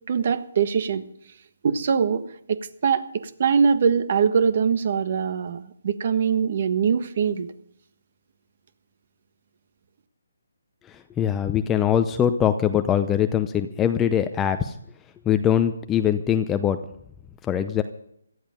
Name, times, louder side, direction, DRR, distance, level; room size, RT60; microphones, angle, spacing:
voice 1, 0.1-1.0 1.6-2.2 2.5-7.5, right 6 dB, 50° right, 12 dB, 1.4 m, -22 dB
voice 2, 10.9-14.7 15.3-16.8 17.5-17.8, left 9 dB, 15° left, 9 dB, 0.6 m, -22 dB
17.5 x 13.0 x 5.2 m, 0.72 s
figure-of-eight pair, 150°, 0 cm